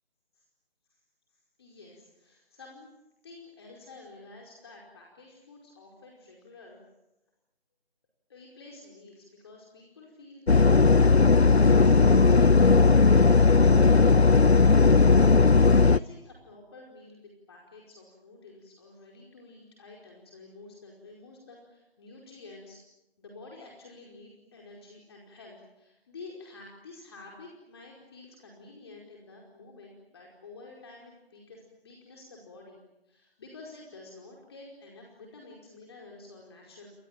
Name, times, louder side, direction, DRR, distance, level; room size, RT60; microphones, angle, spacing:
voice 1, 1.6-2.9 3.2-6.8 8.3-22.8 23.2-36.9, left 3 dB, 25° left, -1 dB, 5.0 m, -50 dB
sound 1, 10.5-16.0, left 4 dB, 85° left, 0.9 m, -18 dB
29.5 x 25.5 x 7.7 m, 0.95 s
figure-of-eight pair, 160°, 31 cm